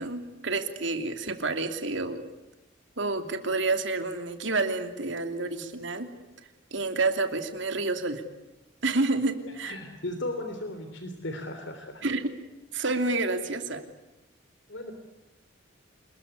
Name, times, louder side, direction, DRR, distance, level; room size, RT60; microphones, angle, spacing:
voice 1, 0.0-2.3 3.0-6.1 6.7-8.2 8.8-9.8 12.0-12.3 12.7-13.8, right 3 dB, 65° right, 7 dB, 3.0 m, -29 dB
voice 2, 9.6-12.0 14.7-14.9, left 1 dB, 60° left, 6 dB, 3.4 m, -36 dB
28.0 x 21.5 x 9.8 m, 0.96 s
head